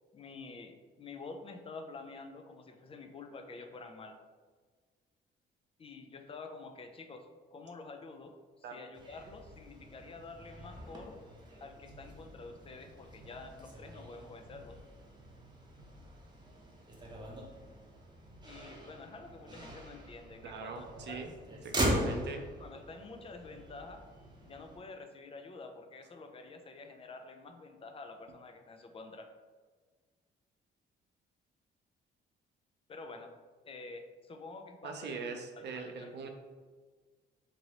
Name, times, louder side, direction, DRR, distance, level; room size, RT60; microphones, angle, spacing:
voice 1, 0.1-4.2 5.8-11.2 11.6-14.8 18.4-21.4 21.8-22.2 22.6-24.0 24.4-29.3 32.9-33.3 33.6-35.2 35.6-36.1, left 3 dB, 30° left, 6 dB, 0.4 m, -48 dB
Motor vehicle (road), 8.9-24.8, equal, 20° right, 0.7 m, -41 dB
voice 2, 20.4-21.3 21.6-22.4 34.8-36.3, right 4 dB, 60° right, 4 dB, 0.5 m, -41 dB
3.0 x 2.6 x 2.9 m, 1.5 s
cardioid pair, 90°, 20 cm